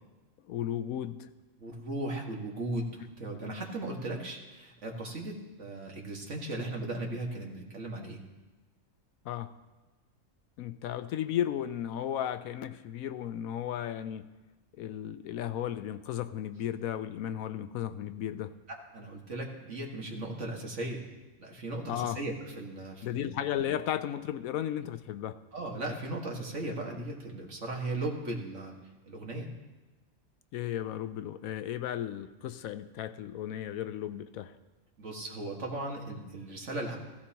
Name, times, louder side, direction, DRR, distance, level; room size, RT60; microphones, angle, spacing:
voice 1, 0.5-1.3 9.2-9.5 10.6-14.3 14.8-18.5 21.9-22.2 23.0-25.4 30.5-34.5, left 11 dB, 80° left, 11 dB, 1.0 m, -34 dB
voice 2, 1.6-8.2 18.7-21.0 21.4-23.3 25.5-28.8 29.1-29.5 35.0-37.0, right 2 dB, 60° right, 0 dB, 2.0 m, -37 dB
16.0 x 15.0 x 2.9 m, 1.2 s
omnidirectional pair, 1.5 m